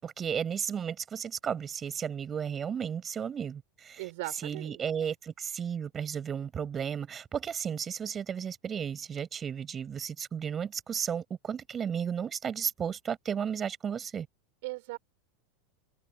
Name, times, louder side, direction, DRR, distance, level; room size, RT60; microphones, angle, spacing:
voice 1, 0.0-4.0 4.4-14.3, right 7 dB, 25° right, 7.4 m, -34 dB
voice 2, 4.0-4.8 14.6-15.0, right 23 dB, 55° right, 6.7 m, -38 dB
figure-of-eight pair, 85°, 0 cm